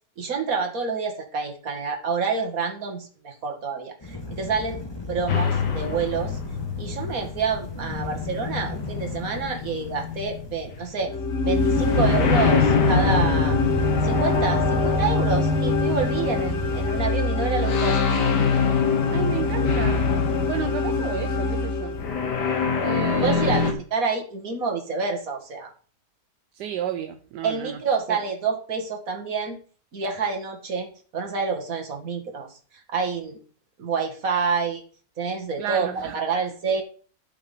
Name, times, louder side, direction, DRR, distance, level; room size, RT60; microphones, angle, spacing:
voice 1, 0.2-4.8 5.1-6.4 6.8-11.1 11.4-13.6 14.0-18.0 23.2-25.7 27.4-29.6 29.9-30.9 31.1-32.5 32.7-33.4 33.8-34.8 35.2-35.9 36.1-36.8, right 5 dB, 50° right, 3 dB, 2.3 m, -28 dB
sound 1, 4.0-17.1, left 2 dB, 15° left, 1.9 m, -33 dB
sound 2, 5.3-10.9 11.5-17.0 17.5-21.3 21.9-23.7, left 5 dB, 75° left, 2.1 m, -25 dB
sound 3, 11.0-22.4, left 3 dB, 45° left, 1.1 m, -26 dB
voice 2, 19.1-20.1 20.4-22.0 22.8-23.8 26.5-27.8 28.1-28.2 35.6-36.2, right 10 dB, 75° right, 8 dB, 1.3 m, -32 dB
11.5 x 5.8 x 5.4 m, 0.42 s
omnidirectional pair, 1.9 m